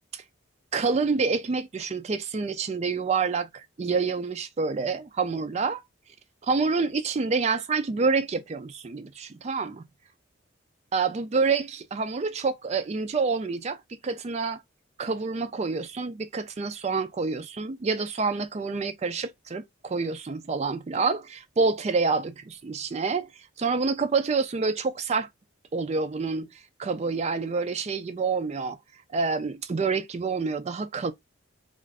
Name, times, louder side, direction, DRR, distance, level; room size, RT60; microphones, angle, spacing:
voice 1, 0.7-5.8 6.5-9.8 10.9-13.8 14.0-14.6 15.0-23.3 23.6-25.3 25.7-26.5 26.8-28.8 29.1-31.1, right 4 dB, 30° right, 0.3 m, -27 dB
2.5 x 2.4 x 3.3 m
head